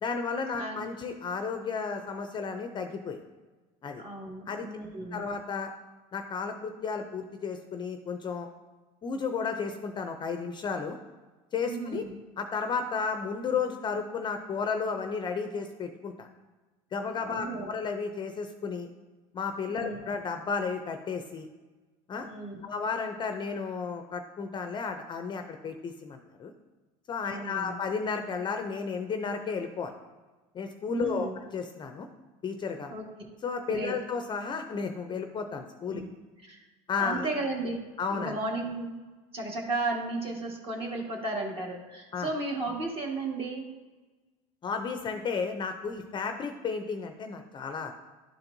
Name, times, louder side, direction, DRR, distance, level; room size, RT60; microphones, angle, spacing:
voice 1, 0.0-3.2 3.8-4.0 4.5-4.7 5.1-5.7 6.1-8.5 9.0-10.9 11.5-12.0 12.4-16.3 16.9-18.9 19.3-21.5 22.1-22.3 22.6-26.5 27.1-29.9 30.5-32.1 32.4-32.9 33.4-36.0 36.9-37.3 38.0-38.4 42.1-42.3 44.6-47.9, left 5 dB, 30° left, 6 dB, 0.5 m, -33 dB
voice 2, 0.6-0.9 4.0-5.3 11.6-12.2 17.3-17.7 19.7-20.0 22.2-22.7 27.2-27.7 30.9-31.4 32.9-33.0 33.7-33.9 35.9-36.1 36.5-36.6 37.0-39.0 39.3-43.7, right 2 dB, 35° right, 0 dB, 1.6 m, -34 dB
11.5 x 4.4 x 2.6 m, 1.3 s
supercardioid pair, 125°, 17 cm